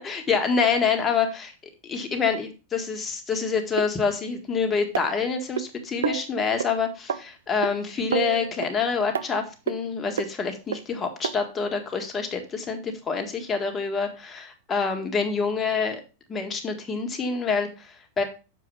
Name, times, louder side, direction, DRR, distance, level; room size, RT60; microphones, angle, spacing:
voice 1, 0.0-1.5 1.8-16.0 16.3-18.2, left 5 dB, 20° left, 4 dB, 1.8 m, -27 dB
sound 1, 3.8-3.9 4.9-5.6 6.0-6.3 6.6-6.7 7.1-7.2 7.6-7.7 8.1-8.7 9.2-9.3 9.7-9.8 10.2-10.3 10.7-10.8 11.2-11.3 12.0-12.1, right 8 dB, 85° right, 0.7 m, -28 dB
6.8 x 4.9 x 5.5 m, 0.33 s
hypercardioid pair, 115°, 0 cm